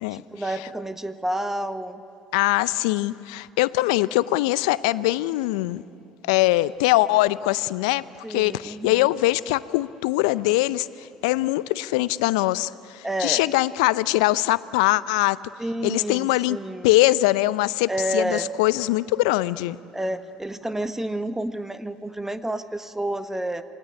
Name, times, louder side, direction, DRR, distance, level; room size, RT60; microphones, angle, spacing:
voice 1, 0.1-2.0 8.2-9.1 13.0-13.5 15.6-16.9 17.9-18.5 19.9-23.6, right 1 dB, 10° right, 10 dB, 1.5 m, -29 dB
voice 2, 2.3-5.8 6.3-15.4 15.8-16.6 16.8-19.8, left 18 dB, 75° left, 18 dB, 0.6 m, -22 dB
27.5 x 19.5 x 10.0 m, 2.8 s
hypercardioid pair, 60°, 4 cm